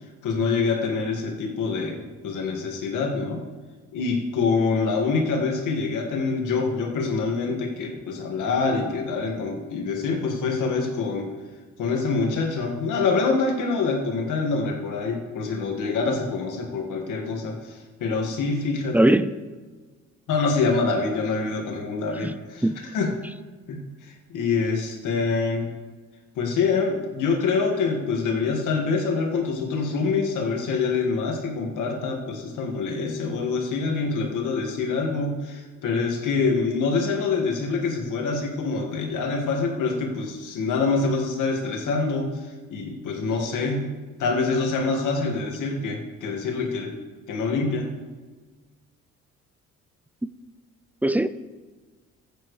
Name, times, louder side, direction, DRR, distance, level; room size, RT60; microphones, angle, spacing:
voice 1, 0.2-3.4 3.9-11.3 11.8-19.0 20.3-23.1 23.7-25.7 26.4-43.8 44.2-47.0 47.3-47.9, left 4 dB, 85° left, 2.1 m, -25 dB
voice 2, 18.9-19.3 22.2-22.8 51.0-51.3, right 1 dB, 5° right, 0.4 m, -21 dB
15.0 x 9.0 x 3.3 m
cardioid pair, 90°, 30 cm